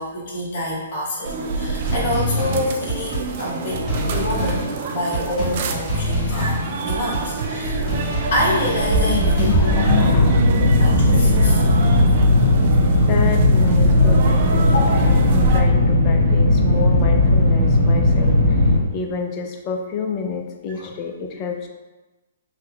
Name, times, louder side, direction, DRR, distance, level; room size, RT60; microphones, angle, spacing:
voice 1, 0.0-7.9 8.3-9.7 10.5-11.7 14.7-15.1 20.7-20.9, left 1 dB, 60° left, -4 dB, 1.1 m, -27 dB
sound 1, 1.2-15.6, right 3 dB, 50° right, 0.4 m, -26 dB
sound 2, 1.9-9.8, equal, 10° left, 1.4 m, -26 dB
voice 2, 9.1-10.6 12.9-14.7 15.0-18.6 18.9-21.7, left 6 dB, 30° left, 3 dB, 0.4 m, -28 dB
sound 3, 9.9-18.8, left 1 dB, 80° right, 1.0 m, -16 dB
3.1 x 2.2 x 3.4 m, 1.1 s
hypercardioid pair, 140°, 0 cm